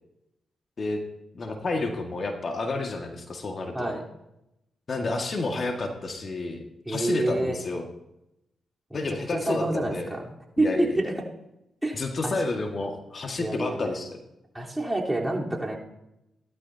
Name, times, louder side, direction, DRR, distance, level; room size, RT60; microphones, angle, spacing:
voice 1, 1.3-3.9 4.9-7.9 8.9-10.1 10.6-11.0 11.9-14.2, left 3 dB, 50° left, 3 dB, 1.9 m, -30 dB
voice 2, 6.9-7.6 8.9-9.0 9.3-10.2 10.6-11.1 11.8-12.0 12.2-12.3 13.4-13.9 14.5-15.8, right 1 dB, 15° right, -3 dB, 3.8 m, -27 dB
18.0 x 12.0 x 2.8 m, 0.87 s
hypercardioid pair, 45°, 0 cm